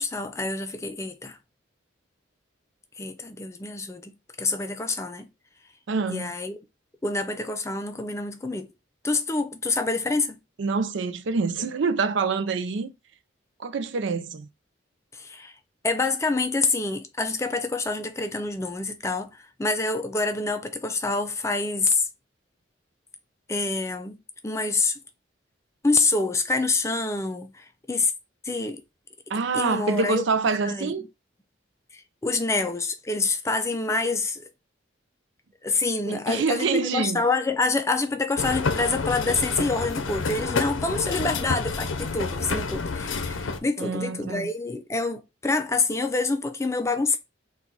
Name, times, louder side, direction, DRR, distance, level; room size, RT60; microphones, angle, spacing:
voice 1, 0.0-1.4 3.0-5.3 6.1-6.6 7.0-8.7 9.0-10.4 15.1-15.5 15.8-22.1 23.5-24.2 24.4-25.0 25.8-28.1 28.4-28.8 29.5-30.2 30.6-30.9 31.9-34.5 35.6-47.2, left 3 dB, 15° left, 0.4 m, -27 dB
voice 2, 5.9-6.3 10.6-12.9 13.6-14.5 29.3-31.1 36.0-37.2 43.8-44.5, right 4 dB, 75° right, 0.5 m, -26 dB
sound 1, 38.4-43.6, left 4 dB, 90° left, 0.6 m, -29 dB
3.9 x 2.4 x 4.4 m
head